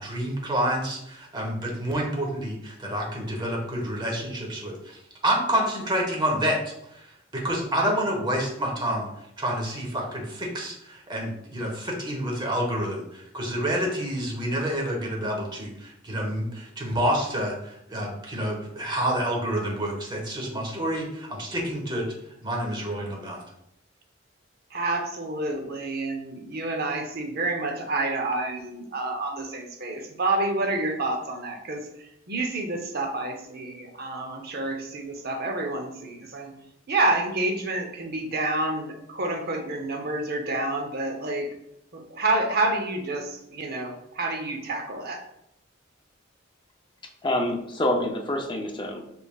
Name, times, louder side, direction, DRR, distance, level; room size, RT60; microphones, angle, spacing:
voice 1, 0.0-7.1 7.3-9.1 9.4-22.1 22.4-23.4, right 1 dB, 20° right, -1 dB, 0.9 m, -28 dB
voice 2, 24.7-36.5 36.9-41.5 41.9-45.2, right 2 dB, 50° right, 4 dB, 0.7 m, -28 dB
voice 3, 47.2-49.1, left 1 dB, 25° left, 2 dB, 0.5 m, -26 dB
5.2 x 3.4 x 2.3 m, 0.77 s
head